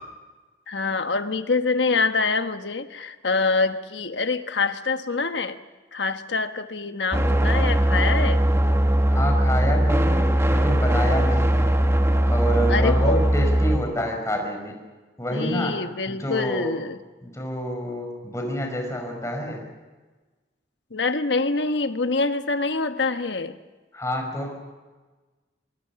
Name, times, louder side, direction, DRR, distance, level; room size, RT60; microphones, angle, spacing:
voice 1, 0.7-5.6 5.9-8.4 12.7-13.2 15.3-17.0 20.9-23.6, left 4 dB, 85° left, 8 dB, 1.3 m, -25 dB
sound 1, 7.1-13.8, right 1 dB, 15° right, 1.4 m, -20 dB
voice 2, 9.1-10.2 10.5-11.7 12.3-14.7 15.2-15.8 16.1-16.7 17.2-19.6 23.9-24.5, equal, 15° left, 2 dB, 5.3 m, -28 dB
25.0 x 23.0 x 5.9 m, 1.3 s
head